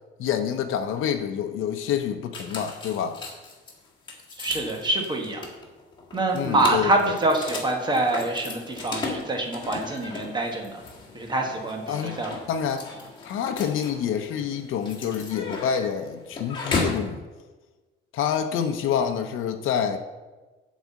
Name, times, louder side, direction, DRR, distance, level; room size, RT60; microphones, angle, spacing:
voice 1, 0.2-3.2 6.3-7.2 11.9-12.2 12.5-12.9 13.2-17.2 18.1-20.0, left 8 dB, 70° left, 5 dB, 0.7 m, -27 dB
sound 1, 2.3-17.1, left 3 dB, 20° left, 1.7 m, -36 dB
voice 2, 4.4-5.5 6.1-10.8 11.1-12.3, right 2 dB, 20° right, 2 dB, 1.2 m, -25 dB
9.4 x 4.2 x 7.4 m, 1.2 s
cardioid pair, 165°, 21 cm